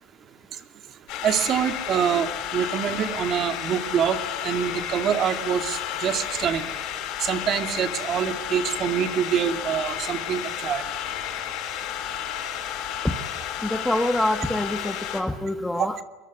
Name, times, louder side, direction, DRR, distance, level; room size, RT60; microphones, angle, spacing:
sound 1, 1.1-15.2, left 10 dB, 65° left, 6.6 m, -32 dB
voice 1, 1.2-2.3 2.5-6.6 7.2-10.8 15.8-15.9, right 8 dB, 50° right, 7 dB, 2.5 m, -25 dB
voice 2, 13.6-16.0, left 1 dB, 5° left, 9 dB, 1.7 m, -25 dB
22.5 x 22.5 x 9.6 m, 1.2 s
supercardioid pair, 90°, 0 cm